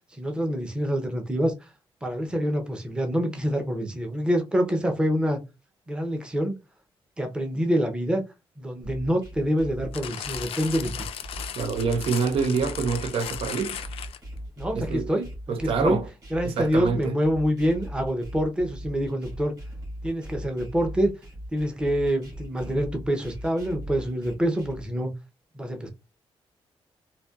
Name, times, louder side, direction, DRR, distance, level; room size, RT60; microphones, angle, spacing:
voice 1, 0.1-1.5 2.0-5.4 5.9-6.6 7.2-8.2 8.6-11.1 14.6-16.0 16.3-19.5 20.0-21.1 21.5-25.1 25.5-25.9, equal, 10° right, 0.6 m, -26 dB
sound 1, 8.8-24.8, equal, 35° right, 1.9 m, -39 dB
sound 2, 9.9-14.4 15.1-15.2, left 9 dB, 75° left, 0.4 m, -36 dB
voice 2, 11.6-13.8 14.7-15.1 15.5-16.1 16.4-17.1, right 5 dB, 70° right, 0.6 m, -26 dB
4.1 x 2.8 x 2.3 m
wide cardioid pair, 170°, 10 cm